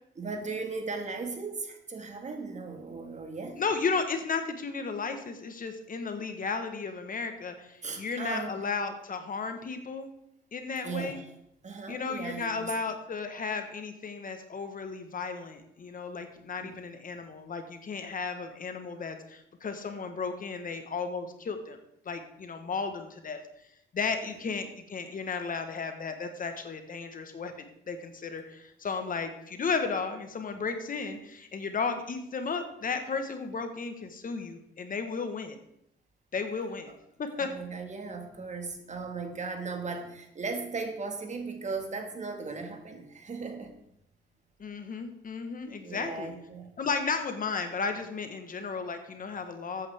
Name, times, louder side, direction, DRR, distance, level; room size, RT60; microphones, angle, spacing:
voice 1, 0.2-3.6 7.8-8.7 10.8-11.3 11.6-12.7 16.6-16.8 24.4-24.6 37.4-43.7 45.7-46.7, right 4 dB, 35° right, 5 dB, 1.9 m, -37 dB
voice 2, 3.6-10.1 10.5-11.2 11.9-21.8 22.0-23.4 23.9-35.6 36.3-36.9 37.2-37.5 44.6-46.3 46.8-49.9, left 5 dB, 45° left, 7 dB, 1.3 m, -34 dB
13.5 x 8.8 x 3.6 m, 0.79 s
cardioid pair, 90°, 20 cm